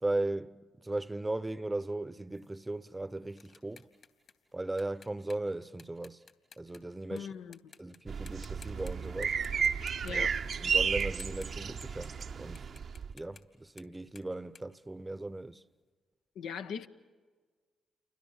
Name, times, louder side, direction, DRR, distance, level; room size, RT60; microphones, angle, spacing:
voice 1, 0.0-3.9 4.5-6.2 6.6-7.3 7.8-9.4 10.1-10.3 10.6-12.1 12.4-12.7 13.1-15.6, right 2 dB, 20° right, 0.9 m, -37 dB
sound 1, 2.3-7.2 7.5-8.0 8.3-8.9 9.2-12.3 12.5-15.6, left 5 dB, 55° left, 3.1 m, -57 dB
voice 2, 7.1-7.6 10.0-10.4 16.3-16.9, left 7 dB, 75° left, 1.0 m, -40 dB
sound 2, 8.1-13.1, right 6 dB, 60° right, 1.0 m, -33 dB
29.5 x 25.0 x 7.3 m
hypercardioid pair, 40°, 0 cm